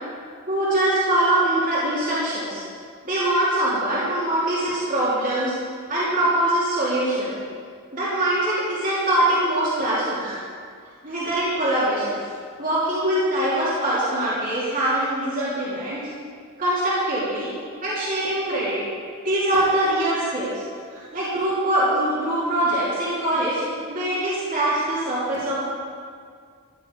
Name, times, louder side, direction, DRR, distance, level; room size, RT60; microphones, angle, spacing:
voice 1, 0.5-2.6 3.0-5.5 5.9-7.3 7.9-10.5 11.0-12.2 12.6-16.1 16.6-17.5 17.8-18.8 19.2-20.6 20.9-23.6 23.9-25.6, right 1 dB, 40° right, -8 dB, 3.1 m, -23 dB
14.0 x 11.5 x 5.2 m, 2.1 s
head